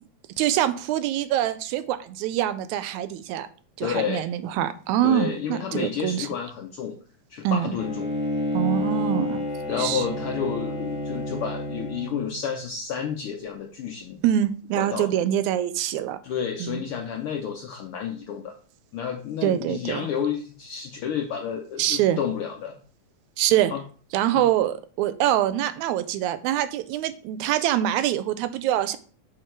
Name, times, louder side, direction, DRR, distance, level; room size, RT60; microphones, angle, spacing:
voice 1, 0.4-3.5 3.8-6.3 7.4-7.8 8.5-9.5 9.8-10.0 14.2-16.2 16.6-16.8 19.4-20.1 21.8-22.2 23.4-23.7 24.1-29.0, right 11 dB, 85° right, 13 dB, 1.9 m, -24 dB
voice 2, 3.8-4.3 5.0-6.9 7.3-8.1 9.7-14.2 14.7-15.1 16.2-18.6 18.9-22.8 23.7-23.8 24.3-24.5, left 7 dB, 75° left, 2 dB, 1.2 m, -30 dB
Bowed string instrument, 7.7-12.4, left 1 dB, 10° right, 0.6 m, -30 dB
6.6 x 4.4 x 4.5 m, 0.41 s
omnidirectional pair, 3.3 m